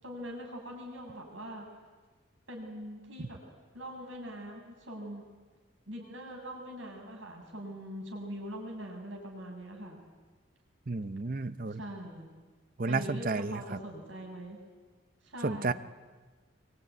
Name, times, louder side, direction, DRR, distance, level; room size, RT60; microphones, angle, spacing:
voice 1, 0.0-1.7 2.5-3.4 3.7-5.2 5.9-10.0 11.7-12.3 12.9-14.6 15.2-15.7, equal, 75° right, 1 dB, 7.4 m, -42 dB
voice 2, 10.9-11.8 12.8-13.8 15.4-15.7, right 3 dB, 45° right, 14 dB, 0.8 m, -32 dB
24.5 x 22.5 x 9.6 m, 1.3 s
head